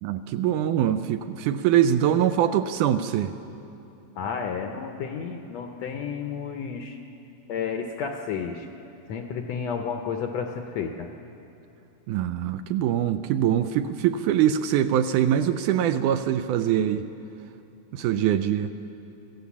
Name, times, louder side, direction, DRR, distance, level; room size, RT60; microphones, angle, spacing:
voice 1, 0.0-3.3 12.1-17.1 17.9-18.7, right 10 dB, 80° right, 10 dB, 2.0 m, -23 dB
voice 2, 4.1-7.0 7.5-8.7 9.1-11.1, left 6 dB, 70° left, 4 dB, 1.7 m, -31 dB
24.0 x 15.5 x 7.2 m, 2.8 s
omnidirectional pair, 3.9 m